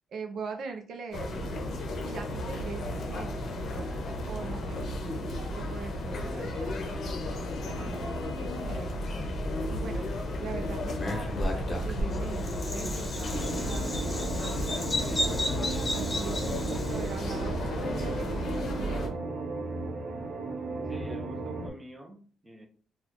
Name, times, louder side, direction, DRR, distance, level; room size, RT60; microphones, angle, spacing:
voice 1, 0.1-1.5 2.0-3.5 3.8-3.9 4.3-5.2 5.5-6.8 7.6-7.9 8.4-9.0 9.7-10.1 10.4-11.3 11.5-13.9 14.4-19.1, right 4 dB, 60° right, 4 dB, 0.5 m, -41 dB
sound 1, 1.1-19.1, left 1 dB, 60° left, 0.7 m, -33 dB
Bird vocalization bird call bird song, 10.9-17.2, left 1 dB, 25° left, 0.8 m, -34 dB
sound 2, 13.3-21.7, right 3 dB, 85° right, 0.8 m, -35 dB
voice 2, 20.9-22.7, equal, 15° right, 3 dB, 0.6 m, -46 dB
4.0 x 2.3 x 2.9 m, 0.43 s
cardioid pair, 125°, 0 cm